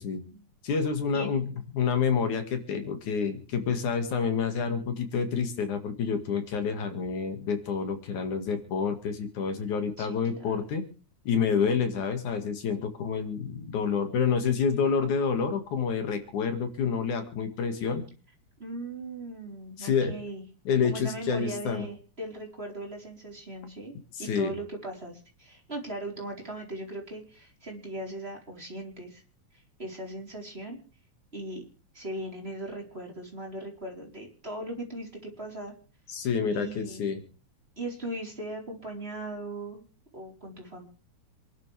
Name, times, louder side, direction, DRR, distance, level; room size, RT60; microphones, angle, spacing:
voice 1, 0.6-1.5 1.7-10.8 11.3-18.0 19.8-20.1 20.7-21.9 24.2-24.5 36.1-37.2, left 6 dB, 75° left, 7 dB, 3.5 m, -28 dB
voice 2, 18.6-20.4 20.8-23.9 24.2-29.2 29.5-30.8 31.3-31.6 31.9-35.7 36.5-37.1 37.8-39.8 40.1-40.9, right 1 dB, 20° right, 0 dB, 4.5 m, -39 dB
27.5 x 12.0 x 3.5 m, 0.37 s
omnidirectional pair, 3.5 m